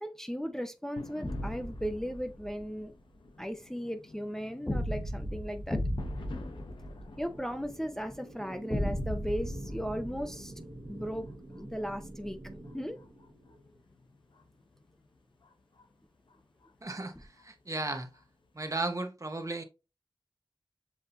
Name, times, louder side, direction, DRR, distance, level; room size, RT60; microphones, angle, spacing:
voice 1, 0.0-2.9 3.4-5.8 7.2-10.5 10.9-11.3 11.6-12.4 12.7-13.0 17.2-17.3, equal, 5° left, 0.6 m, -36 dB
sound 1, 1.0-19.0, left 3 dB, 90° left, 0.7 m, -53 dB
sound 2, 1.2-2.6 4.7-7.6 8.7-10.9, equal, 20° left, 1.1 m, -35 dB
sound 3, 5.9-13.8, right 1 dB, 70° right, 1.6 m, -48 dB
voice 2, 16.8-18.1 18.5-19.6, right 2 dB, 40° right, 0.8 m, -35 dB
7.2 x 2.7 x 2.6 m
wide cardioid pair, 55°, 8 cm